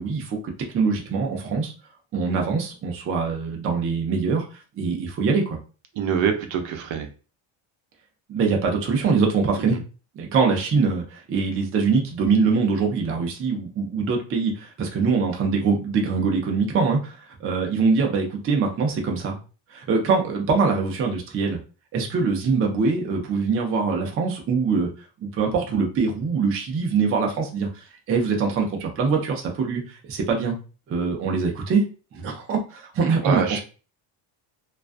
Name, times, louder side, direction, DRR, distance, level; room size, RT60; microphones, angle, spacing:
voice 1, 0.0-1.7 2.1-5.6 8.3-9.8 10.2-19.4 19.7-21.6 21.9-24.9 25.2-30.6 30.9-31.8 32.1-33.6, right 4 dB, 30° right, 1 dB, 0.4 m, -23 dB
voice 2, 6.0-7.1 9.6-9.8 33.2-33.6, right 7 dB, 70° right, 5 dB, 0.6 m, -25 dB
2.4 x 2.2 x 2.4 m, 0.34 s
cardioid pair, 150°, 48 cm